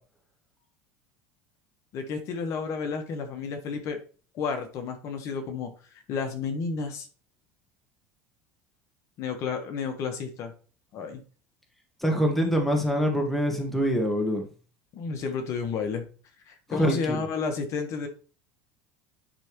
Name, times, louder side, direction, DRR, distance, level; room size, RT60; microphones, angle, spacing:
voice 1, 1.9-4.0 4.3-7.1 9.2-10.5 10.9-11.2 14.9-16.1 16.4-18.1, left 5 dB, 50° left, 5 dB, 1.3 m, -31 dB
voice 2, 12.0-14.4 16.7-17.2, equal, 5° left, 2 dB, 1.4 m, -24 dB
10.0 x 3.4 x 3.1 m, 0.37 s
supercardioid pair, 130°, 7 cm